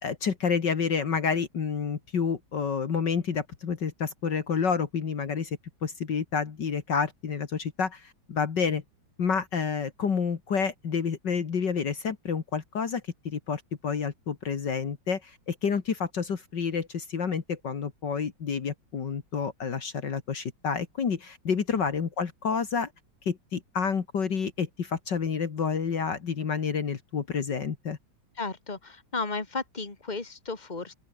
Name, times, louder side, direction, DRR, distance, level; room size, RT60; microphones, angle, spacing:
voice 1, 0.0-8.8 9.2-22.9 23.3-28.0, left 6 dB, 60° left, 2.5 m, -29 dB
voice 2, 28.4-30.9, left 3 dB, 20° left, 2.8 m, -34 dB
open air
omnidirectional pair, 2.2 m